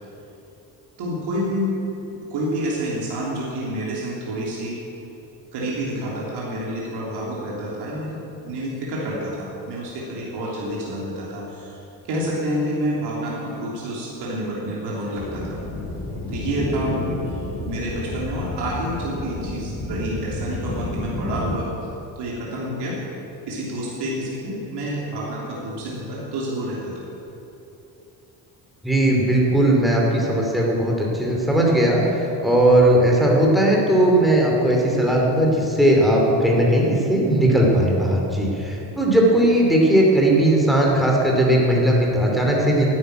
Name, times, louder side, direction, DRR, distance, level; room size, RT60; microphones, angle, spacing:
voice 1, 1.0-1.8 2.3-4.8 5.5-11.8 12.1-15.6 16.3-17.3 17.7-21.7 22.2-23.0 23.5-26.9, right 1 dB, 80° right, -5 dB, 3.2 m, -28 dB
sound 1, 15.2-21.6, left 1 dB, 35° left, 3.9 m, -30 dB
voice 2, 28.8-42.9, right 1 dB, ahead, -2 dB, 2.6 m, -18 dB
11.0 x 9.7 x 9.1 m, 3.0 s
cardioid pair, 125°, 40 cm